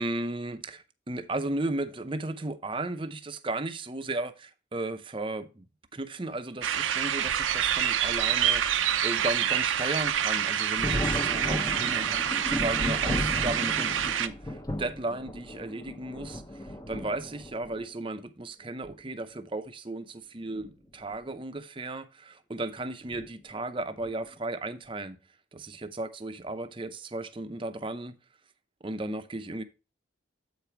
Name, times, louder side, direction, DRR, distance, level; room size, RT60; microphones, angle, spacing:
voice 1, 0.0-5.7 5.9-25.2 25.5-28.2 28.8-29.6, right 2 dB, 25° right, 0.6 m, -35 dB
sound 1, 6.6-14.3, right 9 dB, 90° right, 0.6 m, -27 dB
Thunder, 10.8-17.8 18.8-18.9 20.4-20.7 21.0-21.1 23.1-23.3 24.0-24.3, left 1 dB, 20° left, 0.7 m, -35 dB
7.9 x 5.0 x 4.4 m
head